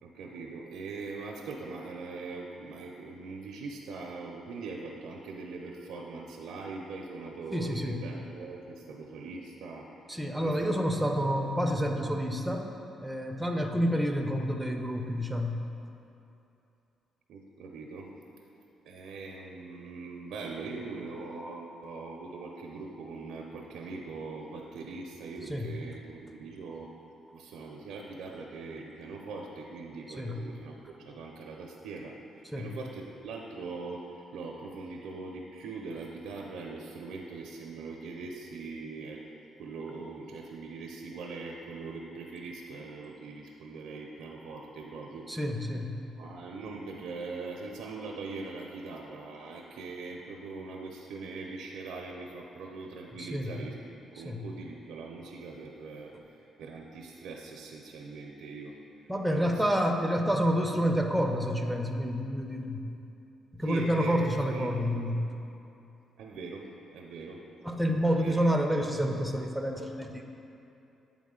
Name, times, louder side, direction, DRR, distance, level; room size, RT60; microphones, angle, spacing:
voice 1, 0.0-10.9 17.3-18.1 18.8-26.9 27.3-39.2 39.6-45.3 46.2-53.8 54.2-58.8 59.3-59.7 60.0-60.1 63.6-65.1 66.2-67.4 68.2-68.5, right 3 dB, 80° right, -1 dB, 0.5 m, -41 dB
voice 2, 7.5-8.0 10.1-12.7 13.0-15.6 25.5-25.7 30.2-30.4 32.5-32.7 45.3-45.9 53.2-53.6 54.3-54.4 59.1-62.8 63.5-65.3 67.6-70.2, equal, 5° right, 3 dB, 0.6 m, -29 dB
8.5 x 3.7 x 3.7 m, 2.8 s
cardioid pair, 90°, 0 cm